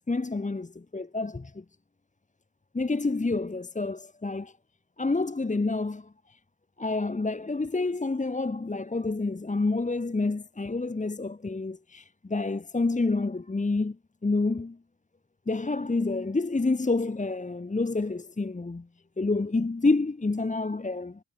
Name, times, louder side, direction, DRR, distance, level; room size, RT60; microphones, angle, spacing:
voice 1, 0.1-1.6 2.7-4.5 5.0-6.4 6.8-14.0 14.2-14.8 15.5-18.9 19.2-21.2, left 3 dB, 20° left, 1.4 m, -28 dB
cardioid pair, 75°, 40 cm